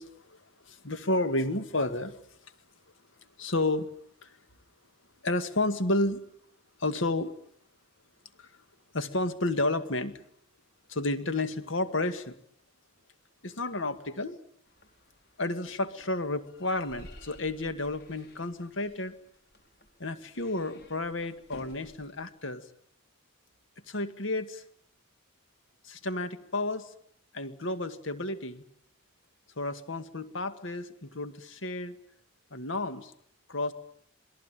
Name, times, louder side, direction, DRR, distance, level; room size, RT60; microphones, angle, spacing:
voice 1, 0.0-2.2 3.4-3.9 4.2-4.4 5.2-6.2 6.8-7.3 8.4-8.5 8.9-10.2 10.9-12.3 13.4-14.4 15.4-19.1 20.0-22.7 23.9-24.6 25.8-26.9 27.3-28.6 29.6-32.0 32.5-33.1 33.5-33.7, left 2 dB, 70° left, 10 dB, 2.0 m, -31 dB
sound 1, 14.7-22.3, left 1 dB, 55° left, 4.6 m, -55 dB
27.5 x 20.5 x 9.2 m, 0.68 s
head